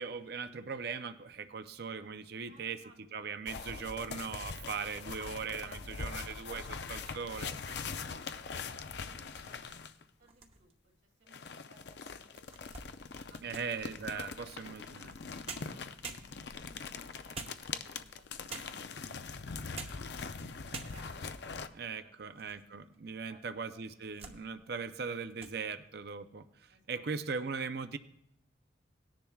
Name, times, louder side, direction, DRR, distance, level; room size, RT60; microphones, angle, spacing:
voice 1, 0.0-2.8 3.1-7.5 13.4-14.3 14.6-15.1 21.7-28.0, right 5 dB, 55° right, 10 dB, 0.5 m, -39 dB
voice 2, 1.4-1.7 2.5-3.4 5.2-6.7 7.6-9.9 10.2-10.7 11.0-12.9 13.3-20.1 20.6-22.5 23.3-23.6 23.9-24.1 26.7-27.1, right 3 dB, 75° right, -2 dB, 2.6 m, -62 dB
sound 1, 3.5-10.0 11.3-21.7, left 5 dB, 60° left, 0.5 m, -42 dB
sound 2, 10.2-10.9 11.5-11.6 12.1-13.8 15.1-15.2 15.5-16.7 17.3-18.0 18.5-19.0 19.6-20.1 20.4-20.5 20.7-21.3 21.8-22.6 22.9-23.0 23.7-24.4 24.8-25.0 25.3-25.6, right 4 dB, 30° right, 0.9 m, -47 dB
18.5 x 10.5 x 2.3 m, 0.78 s
head